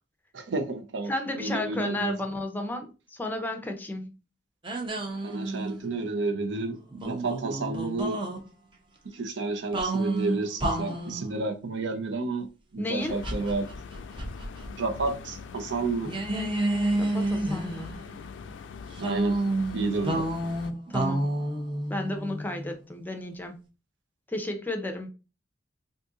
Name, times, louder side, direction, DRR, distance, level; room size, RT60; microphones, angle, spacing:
voice 1, 0.3-1.1 1.4-2.1 5.2-8.2 9.1-12.5 12.7-13.7 14.8-16.1 19.0-19.4 19.7-20.3, right 3 dB, 85° right, 0.6 m, -30 dB
voice 2, 1.1-4.2 12.8-13.2 17.0-17.9 20.9-21.4 21.9-23.6 24.3-25.1, left 1 dB, 10° left, 0.4 m, -33 dB
sound 1, 4.6-5.9 6.9-8.4 9.7-11.3 13.2-14.7 15.0-15.1 16.0-18.2 19.0-22.7, right 2 dB, 25° right, 0.7 m, -30 dB
sound 2, 13.0-20.7, left 5 dB, 85° left, 0.3 m, -42 dB
2.6 x 2.5 x 3.6 m
head